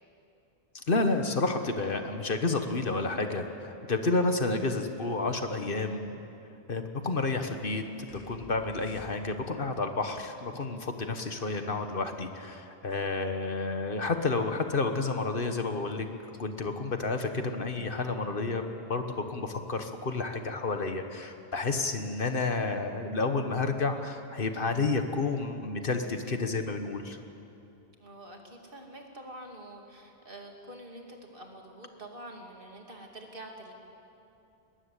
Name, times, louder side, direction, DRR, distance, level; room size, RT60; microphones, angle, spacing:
voice 1, 0.7-6.2 6.7-7.8 8.3-16.1 16.4-27.2, left 3 dB, 60° left, 6 dB, 1.5 m, -30 dB
sound 1, 8.1-9.6, left 3 dB, 35° left, 1.6 m, -51 dB
voice 2, 28.0-33.7, right 1 dB, 55° right, 1 dB, 2.8 m, -46 dB
21.0 x 20.5 x 8.3 m, 2.7 s
omnidirectional pair, 1.1 m